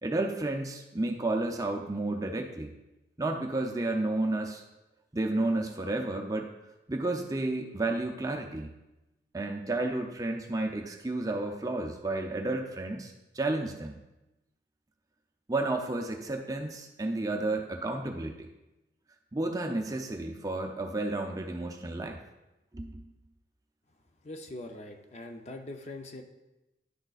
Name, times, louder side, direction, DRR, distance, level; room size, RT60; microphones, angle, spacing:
voice 1, 0.0-2.7 3.2-4.6 5.1-6.5 6.9-8.7 9.3-14.0 15.5-18.5 19.3-22.2 22.7-23.1, right 2 dB, 20° right, 3 dB, 0.5 m, -31 dB
voice 2, 24.2-26.2, left 2 dB, 35° left, 4 dB, 0.5 m, -42 dB
10.5 x 6.5 x 2.4 m, 0.99 s
head